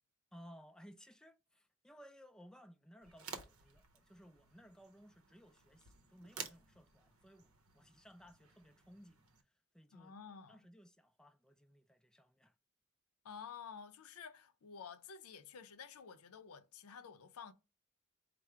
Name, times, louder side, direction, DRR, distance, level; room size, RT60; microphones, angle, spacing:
voice 1, 0.3-9.5 9.7-10.1 10.5-12.5, equal, 5° left, 0.3 m, -60 dB
sound 1, 3.0-9.4, right 6 dB, 75° right, 0.7 m, -53 dB
voice 2, 9.9-10.6 13.2-17.5, left 6 dB, 85° left, 0.5 m, -51 dB
4.8 x 2.0 x 4.4 m
head